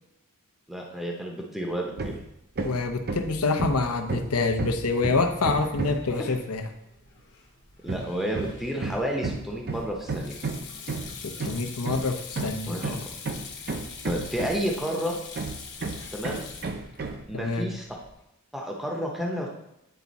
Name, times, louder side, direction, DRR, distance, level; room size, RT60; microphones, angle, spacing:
voice 1, 0.7-2.1 7.8-10.4 12.6-12.9 14.0-15.2 16.1-16.4 17.3-17.8 18.5-19.5, equal, ahead, -1 dB, 0.8 m, -31 dB
Hammer, 2.0-2.3 2.6-6.1 7.9-14.8 15.4-17.3, right 3 dB, 45° right, 0.6 m, -32 dB
voice 2, 2.6-6.7 11.1-13.1 17.3-17.7, left 3 dB, 85° left, 6 dB, 0.8 m, -27 dB
Sink (filling or washing), 4.5-18.2, left 5 dB, 55° left, 1.1 m, -44 dB
9.5 x 3.5 x 4.1 m, 0.85 s
head